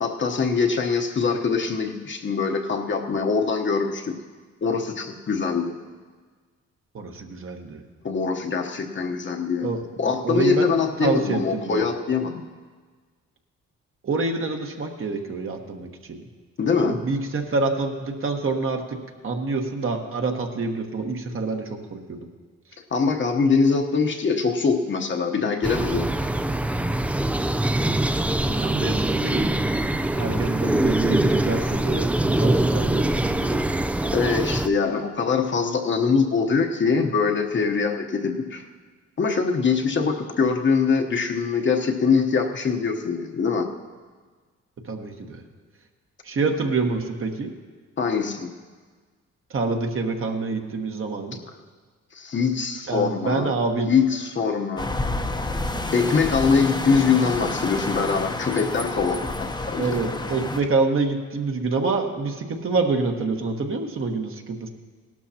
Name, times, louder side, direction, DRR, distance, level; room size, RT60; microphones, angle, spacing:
voice 1, 0.0-4.1 4.6-5.7 8.0-9.7 10.0-12.4 16.6-17.0 22.9-26.1 34.1-38.7 39.2-43.7 48.0-48.5 52.1-53.5 53.9-54.9 55.9-60.0, left 5 dB, 40° left, 3 dB, 1.1 m, -23 dB
voice 2, 6.9-7.8 9.6-9.8 10.2-10.7 11.0-11.8 14.0-16.2 16.8-19.0 19.2-22.2 28.5-29.7 30.2-33.6 44.9-45.4 46.2-47.5 49.5-51.4 52.9-53.9 59.8-64.7, right 3 dB, 45° right, 3 dB, 1.4 m, -27 dB
sound 1, 25.6-34.7, right 1 dB, 5° right, 0.3 m, -23 dB
sound 2, 54.8-60.6, left 2 dB, 15° left, 0.8 m, -29 dB
17.0 x 12.0 x 2.9 m, 1.5 s
cardioid pair, 90°, 30 cm